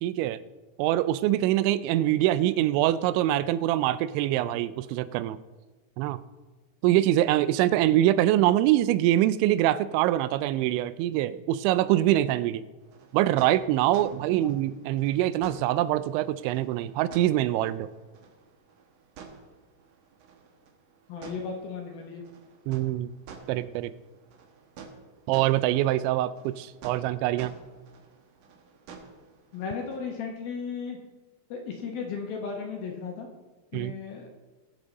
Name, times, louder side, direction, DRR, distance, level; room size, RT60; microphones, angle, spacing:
voice 1, 0.0-0.4 0.8-5.4 6.0-6.2 6.8-12.6 13.1-17.9 22.7-23.1 23.5-23.9 25.3-27.5 33.7-33.9, right 13 dB, 85° right, 14 dB, 2.9 m, -24 dB
sound 1, 12.8-30.0, right 5 dB, 65° right, 2.0 m, -50 dB
voice 2, 21.1-22.2 29.5-31.0 31.5-33.3 33.7-34.3, left 5 dB, 70° left, 2 dB, 2.5 m, -35 dB
21.0 x 7.4 x 4.0 m, 1.2 s
omnidirectional pair, 5.3 m